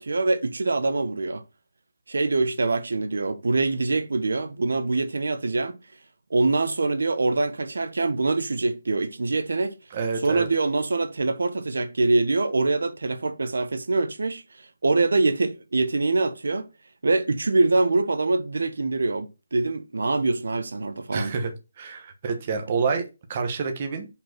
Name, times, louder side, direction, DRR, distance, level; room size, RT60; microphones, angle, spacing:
voice 1, 0.0-1.4 2.1-5.8 6.3-9.8 10.2-16.7 17.0-21.3, right 3 dB, 80° right, 1.1 m, -24 dB
voice 2, 9.9-10.5 21.1-21.5 21.8-24.1, right 5 dB, 25° right, 1.2 m, -28 dB
5.6 x 4.6 x 6.0 m
hypercardioid pair, 175°, 0 cm